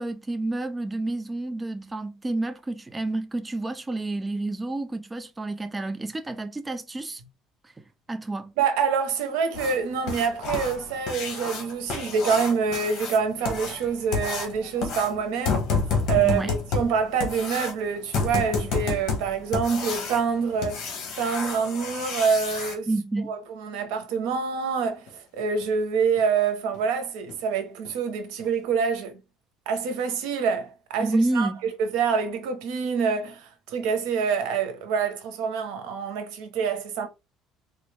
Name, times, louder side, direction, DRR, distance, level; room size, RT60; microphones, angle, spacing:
voice 1, 0.0-7.2 7.6-7.7 8.1-8.5 16.2-16.5 22.9-23.3 31.0-31.7, right 2 dB, 10° right, 0.3 m, -29 dB
voice 2, 8.6-15.7 16.1-20.9 21.2-22.9 23.3-29.2 29.7-31.5 31.8-37.1, right 6 dB, 90° right, 0.9 m, -26 dB
sound 1, 9.5-22.7 25.1-25.2 25.6-25.7 26.2-26.3 26.7-26.8 27.3-27.5 27.8-27.9 28.4-28.5, left 4 dB, 55° left, 1.3 m, -30 dB
3.9 x 2.4 x 3.3 m
cardioid pair, 155°, 0 cm